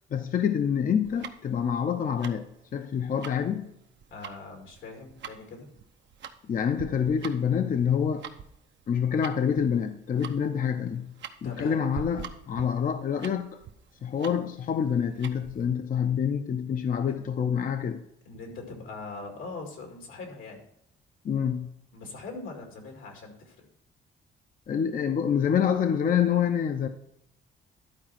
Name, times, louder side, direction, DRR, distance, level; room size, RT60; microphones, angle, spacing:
voice 1, 0.1-2.4 2.7-3.7 6.5-8.2 8.9-11.1 11.4-13.5 14.0-18.0 21.2-21.7 24.7-26.9, left 7 dB, 45° left, 0.6 m, -27 dB
Tick-tock, 1.0-15.7, right 8 dB, 65° right, 0.8 m, -45 dB
voice 2, 4.1-5.7 11.4-11.8 17.1-17.3 18.2-20.6 21.9-23.7, left 3 dB, 85° left, 2.2 m, -41 dB
11.5 x 4.2 x 5.8 m
cardioid pair, 90°, 20 cm